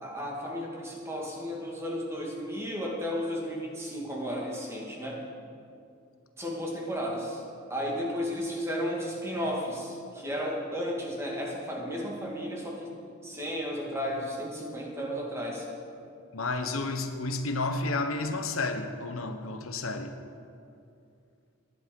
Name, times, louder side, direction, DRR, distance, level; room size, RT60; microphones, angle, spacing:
voice 1, 0.0-5.2 6.4-7.4 7.7-12.9 13.2-15.7, equal, 10° right, -2 dB, 2.3 m, -33 dB
voice 2, 16.3-20.1, left 3 dB, 70° left, 6 dB, 1.1 m, -31 dB
19.0 x 11.0 x 5.4 m, 2.5 s
head